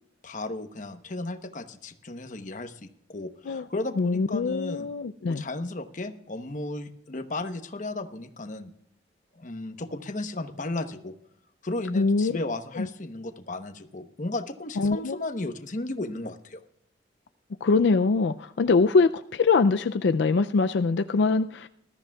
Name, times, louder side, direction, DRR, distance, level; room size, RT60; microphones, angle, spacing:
voice 1, 0.2-4.9 5.3-8.7 9.4-11.1 11.6-16.6, left 2 dB, 45° left, 8 dB, 1.0 m, -34 dB
voice 2, 4.0-5.4 11.9-12.4 12.8-12.9 14.8-15.2 17.6-21.7, left 4 dB, 80° left, 10 dB, 0.4 m, -23 dB
20.0 x 13.0 x 2.3 m, 0.74 s
head